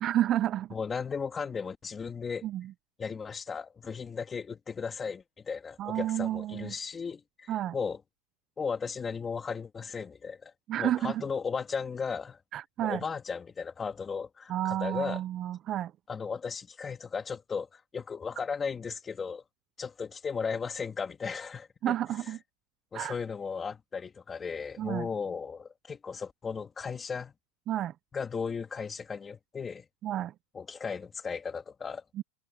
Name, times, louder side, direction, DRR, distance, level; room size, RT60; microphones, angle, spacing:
voice 1, 0.0-0.7 2.4-2.7 5.8-6.7 7.5-7.7 10.7-11.2 12.5-13.0 14.5-15.9 21.8-22.4 22.9-23.2 24.8-25.1 27.7-27.9 30.0-30.3 32.1-32.2, right 12 dB, 30° right, 0.4 m, -30 dB
voice 2, 0.7-2.5 3.0-8.0 8.6-10.5 10.8-12.4 12.8-15.2 16.1-19.4 19.8-21.9 22.9-27.3 28.1-29.8 30.5-32.2, left 5 dB, 15° left, 1.8 m, -36 dB
supercardioid pair, 145°, 0 cm